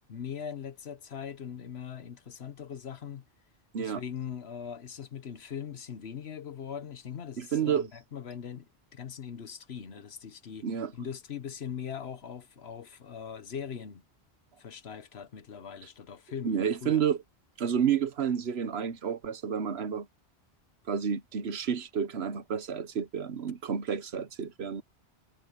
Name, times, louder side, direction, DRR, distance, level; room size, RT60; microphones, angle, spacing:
voice 1, 0.1-3.2 3.8-10.7 10.9-14.0 14.6-17.0, left 7 dB, 75° left, 1.3 m, -41 dB
voice 2, 7.4-7.9 10.6-10.9 16.4-17.2 17.6-20.1 20.9-24.8, right 8 dB, 75° right, 1.3 m, -30 dB
omnidirectional pair, 1.1 m